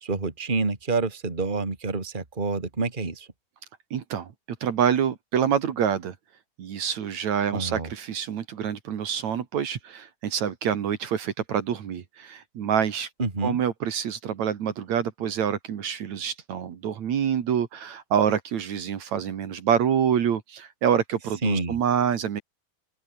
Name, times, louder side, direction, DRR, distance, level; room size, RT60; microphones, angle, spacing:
voice 1, 0.0-3.3 7.5-7.9 13.2-13.6 21.4-21.8, right 3 dB, 15° right, 2.6 m, -28 dB
voice 2, 3.9-4.3 4.6-6.1 6.6-13.1 13.4-22.4, right 8 dB, 65° right, 3.1 m, -26 dB
open air
omnidirectional pair, 3.5 m